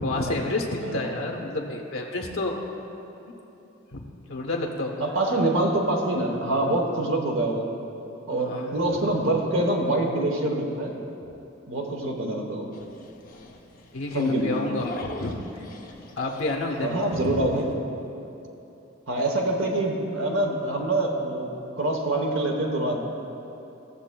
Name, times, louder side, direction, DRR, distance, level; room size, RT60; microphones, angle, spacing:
voice 1, 0.0-2.6 3.9-4.0 4.3-5.1 8.3-8.8 13.9-15.6 16.2-17.5, left 2 dB, 80° left, 1 dB, 0.8 m, -29 dB
voice 2, 0.8-1.2 5.0-7.7 8.3-11.0 11.7-12.7 14.1-14.7 16.8-17.7 19.1-21.5 21.8-23.0, right 1 dB, 70° right, 1 dB, 1.0 m, -25 dB
Dog, 12.7-17.7, left 2 dB, 40° left, 0.7 m, -44 dB
16.0 x 6.9 x 2.2 m, 3.0 s
head